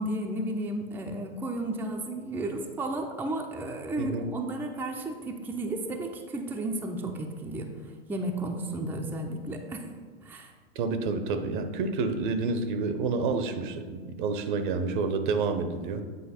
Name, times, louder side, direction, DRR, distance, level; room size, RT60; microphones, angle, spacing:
voice 1, 0.0-7.7 8.1-9.9 10.2-10.5, right 1 dB, 5° right, 2 dB, 0.6 m, -33 dB
voice 2, 4.0-4.3 10.7-16.0, right 4 dB, 55° right, 9 dB, 0.9 m, -29 dB
8.4 x 4.6 x 4.3 m, 1.5 s
hypercardioid pair, 110°, 29 cm